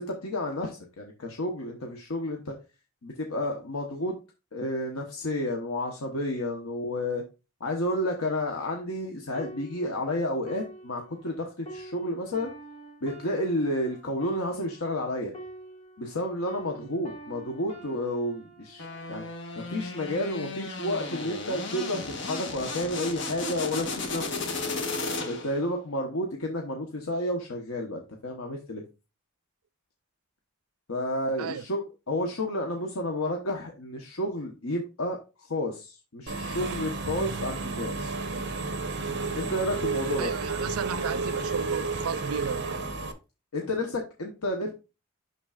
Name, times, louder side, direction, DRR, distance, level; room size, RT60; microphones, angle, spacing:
voice 1, 0.0-2.5 3.0-4.1 4.5-7.2 7.6-12.5 13.0-15.3 16.0-19.2 19.7-24.3 25.2-28.8 30.9-31.8 32.1-38.2 39.3-40.3 43.5-44.7, left 1 dB, 75° left, 1.1 m, -31 dB
sound 1, 9.3-16.2 16.5-20.0 20.7-20.9, right 2 dB, 30° left, 1.9 m, -46 dB
sound 2, 18.8-25.6, left 3 dB, 55° left, 1.5 m, -34 dB
Engine / Mechanisms, 36.3-43.1, right 3 dB, 55° right, 1.0 m, -31 dB
voice 2, 40.2-42.7, right 7 dB, 85° right, 0.5 m, -34 dB
11.0 x 3.9 x 2.4 m
head